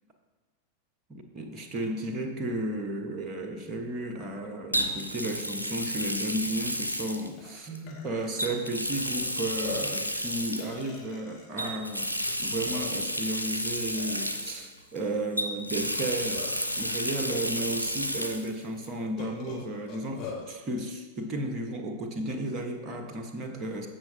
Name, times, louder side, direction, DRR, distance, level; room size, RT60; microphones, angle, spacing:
voice 1, 1.1-12.1 12.4-16.4 16.8-23.9, right 1 dB, 30° right, 3 dB, 1.2 m, -33 dB
Water tap faucet, 1.8-2.0 4.7-7.8 8.4-10.8 11.6-15.0 15.4-18.5 18.8-18.9 20.5-20.6, equal, 85° right, 0.6 m, -32 dB
Burping eructation, 6.1-6.2 6.5-6.7 7.4-7.5 7.9-8.5 9.2-9.3 9.6-10.0 10.6-11.6 12.3-12.4 12.7-13.2 13.9-14.3 15.8-16.7 17.6-17.7 18.1-18.2 19.2-20.4, left 6 dB, 35° left, 2.4 m, -42 dB
16.0 x 6.0 x 2.8 m, 1.4 s
figure-of-eight pair, 90°, 0 cm